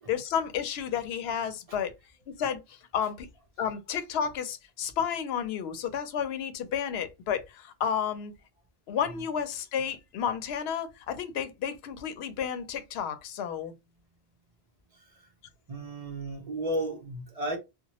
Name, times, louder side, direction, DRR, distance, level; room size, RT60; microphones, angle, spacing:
voice 1, 0.1-1.9 2.4-3.3 3.6-8.3 8.9-13.7, left 8 dB, 70° left, 0.8 m, -31 dB
voice 2, 14.9-15.3 15.7-17.6, right 1 dB, 35° right, 0.8 m, -34 dB
2.8 x 2.2 x 2.9 m
omnidirectional pair, 1.1 m